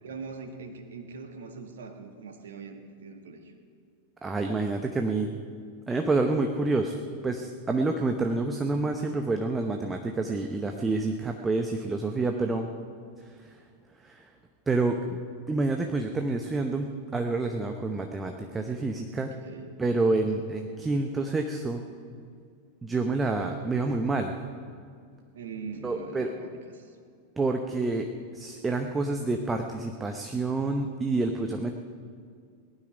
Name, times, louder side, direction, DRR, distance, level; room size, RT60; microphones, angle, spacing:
voice 1, 0.0-3.5 19.1-19.8 25.3-27.0, right 4 dB, 60° right, 5 dB, 1.5 m, -42 dB
voice 2, 4.2-5.3 5.9-12.7 14.0-14.3 14.7-15.2 15.5-19.4 19.8-21.8 22.8-24.3 25.8-26.3 27.4-28.1 28.3-31.8, right 3 dB, 15° right, 4 dB, 0.8 m, -28 dB
18.5 x 12.0 x 5.1 m, 2.2 s
figure-of-eight pair, 90°, 0 cm